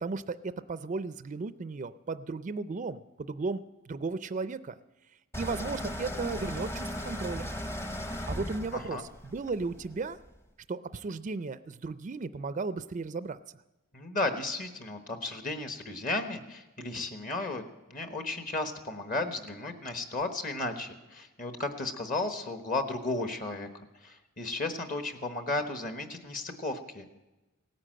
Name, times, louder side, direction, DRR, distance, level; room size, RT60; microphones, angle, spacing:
voice 1, 0.0-4.7 5.4-7.5 8.3-10.2 10.7-13.4, right 4 dB, 35° right, 13 dB, 0.4 m, -35 dB
sound 1, 5.3-10.3, equal, 15° left, 0.8 m, -37 dB
voice 2, 8.7-9.0 13.9-17.6 17.9-23.7 24.0-27.1, left 2 dB, 40° left, 7 dB, 1.2 m, -34 dB
17.5 x 9.9 x 7.6 m, 1.0 s
head